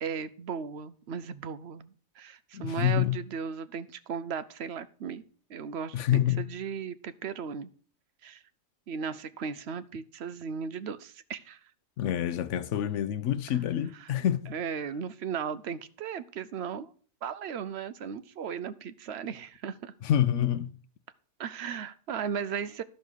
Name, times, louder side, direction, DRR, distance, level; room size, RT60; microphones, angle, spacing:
voice 1, 0.0-5.2 5.5-6.0 6.4-7.7 8.2-8.4 8.9-11.6 14.0-14.1 14.5-16.9 17.2-19.9 21.4-22.8, right 7 dB, 60° right, 0.9 m, -36 dB
voice 2, 2.5-3.2 5.9-6.4 12.0-14.5 20.0-20.7, left 11 dB, 70° left, 1.0 m, -27 dB
12.5 x 5.4 x 6.3 m
omnidirectional pair, 1.4 m